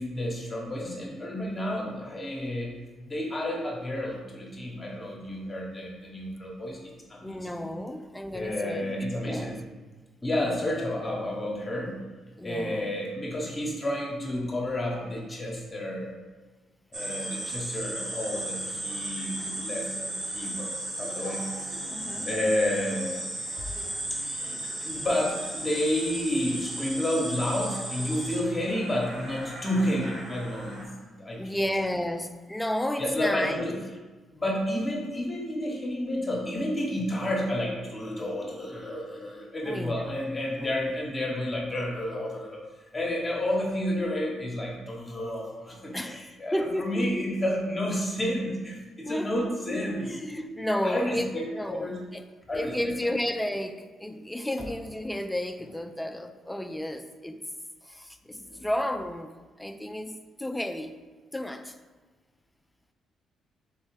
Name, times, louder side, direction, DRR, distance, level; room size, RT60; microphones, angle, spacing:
voice 1, 0.0-2.7 3.1-7.7 8.3-9.6 10.2-12.0 12.4-16.1 16.9-20.7 21.0-21.7 22.2-23.3 24.1-24.2 24.8-30.9 31.2-31.7 33.0-33.8 34.3-42.6 42.9-50.4 50.8-51.4 51.7-52.0 52.5-53.1 54.6-54.7 58.4-58.6, left 1 dB, 25° left, -2 dB, 0.9 m, -31 dB
voice 2, 7.2-9.6 10.4-10.7 12.4-12.9 21.9-22.6 31.3-33.7 39.6-40.7 45.9-47.3 49.0-52.2 52.5-57.4 57.8-60.1 60.4-60.9 61.3-61.7, left 1 dB, 5° left, 8 dB, 0.3 m, -33 dB
sound 1, 16.9-30.8, right 1 dB, 40° right, 1.2 m, -35 dB
3.6 x 3.1 x 4.6 m, 1.3 s
cardioid pair, 90°, 0 cm